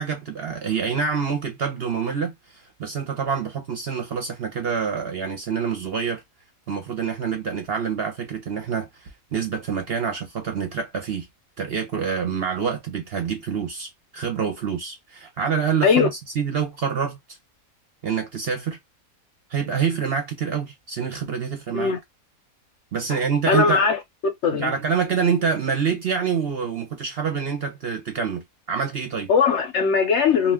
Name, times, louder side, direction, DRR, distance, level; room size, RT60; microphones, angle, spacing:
voice 1, 0.0-6.2 6.7-11.3 11.6-17.2 18.0-18.8 19.5-21.9 22.9-23.9 24.5-29.3, right 6 dB, 55° right, 0.8 m, -26 dB
voice 2, 23.5-24.0 24.4-24.7 29.3-30.5, left 5 dB, 60° left, 0.8 m, -19 dB
2.4 x 2.4 x 3.3 m
omnidirectional pair, 1.5 m